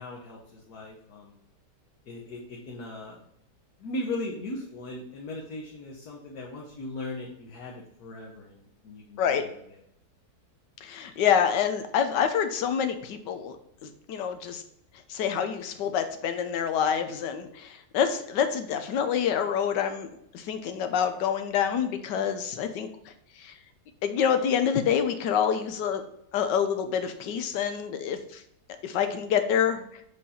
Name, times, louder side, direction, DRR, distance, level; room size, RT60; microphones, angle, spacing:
voice 1, 0.0-1.3 2.1-3.2 3.8-9.5, left 2 dB, 65° left, -2 dB, 1.5 m, -38 dB
voice 2, 10.8-13.5 13.8-14.6 15.1-20.1 20.3-22.9 23.4-23.5 24.0-26.0 26.3-28.4 28.8-29.8, left 8 dB, 90° left, 8 dB, 1.4 m, -27 dB
5.4 x 5.1 x 4.2 m, 0.75 s
omnidirectional pair, 1.8 m